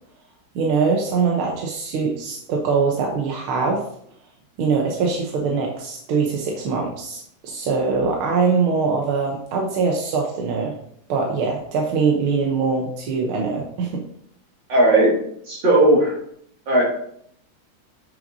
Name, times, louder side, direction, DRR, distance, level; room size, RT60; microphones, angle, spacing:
voice 1, 0.6-3.8 4.6-10.7 11.1-14.0, right 4 dB, 85° right, 0 dB, 1.8 m, -22 dB
voice 2, 14.7-15.1 15.5-16.2 16.7-16.8, right 1 dB, 65° right, -4 dB, 3.0 m, -16 dB
8.9 x 6.0 x 2.7 m, 0.68 s
omnidirectional pair, 2.3 m